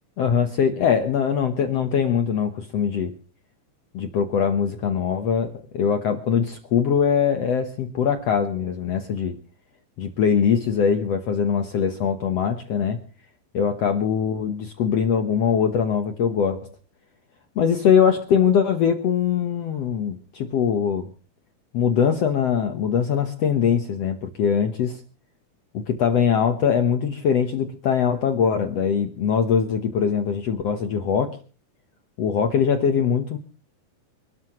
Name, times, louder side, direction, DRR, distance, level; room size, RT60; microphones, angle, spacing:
voice 1, 0.2-3.1 3.9-9.3 10.0-13.0 13.5-16.7 17.5-21.1 21.7-25.0 25.7-31.4 32.2-33.4, left 7 dB, 65° left, 7 dB, 1.6 m, -22 dB
27.5 x 12.5 x 3.1 m, 0.36 s
omnidirectional pair, 4.3 m